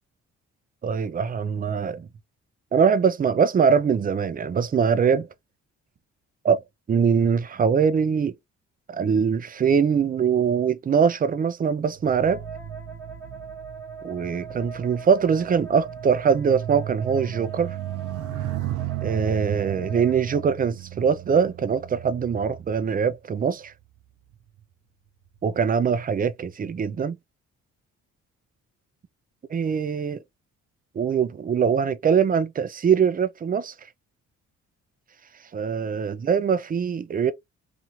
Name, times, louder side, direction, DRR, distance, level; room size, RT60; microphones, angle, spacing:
voice 1, 0.8-2.1 2.7-5.3 6.4-6.6 6.9-8.3 8.9-12.4 14.0-17.8 19.0-23.7 25.4-27.1 29.5-30.2 31.0-33.7 35.5-37.3, right 6 dB, 30° right, 0.4 m, -22 dB
sound 1, 11.9-23.6 24.3-24.6, right 13 dB, 75° right, 0.6 m, -35 dB
Wind instrument woodwind instrument, 12.2-20.4, right 5 dB, 10° left, 1.1 m, -41 dB
2.7 x 2.5 x 2.9 m
cardioid pair, 90°, 30 cm